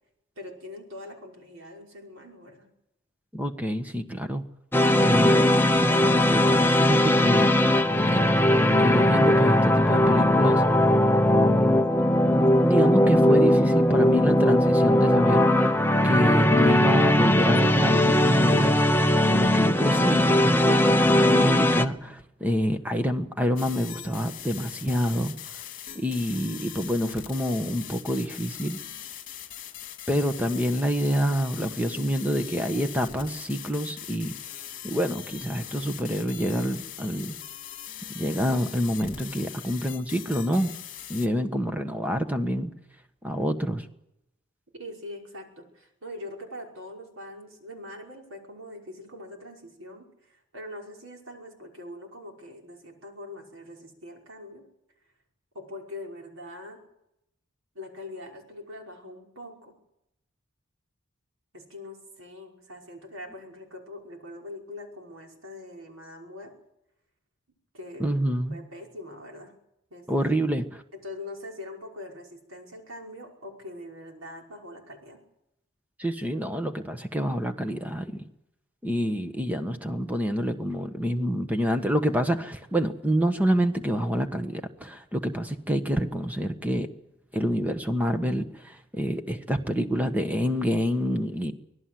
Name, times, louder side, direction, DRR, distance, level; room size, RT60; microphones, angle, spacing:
voice 1, 0.4-2.7 44.7-54.6 55.5-56.8 57.8-59.7 61.5-66.5 67.7-68.1 68.5-69.5 69.9-70.3 71.0-75.2, left 1 dB, 80° right, 1 dB, 5.4 m, -42 dB
voice 2, 3.3-4.4 5.0-7.5 8.0-10.6 12.3-15.5 16.0-18.8 19.3-25.3 25.9-28.8 30.1-34.3 34.8-37.3 38.1-40.7 41.1-42.7 43.2-43.8 68.0-68.6 70.1-70.8 76.0-78.2 78.8-86.9 87.3-91.5, equal, 5° right, 7 dB, 1.4 m, -27 dB
sound 1, 4.7-21.9, left 1 dB, 10° left, 0.8 m, -20 dB
sound 2, 23.6-41.3, left 10 dB, 40° left, 2.5 m, -41 dB
24.5 x 18.0 x 7.8 m, 0.83 s
head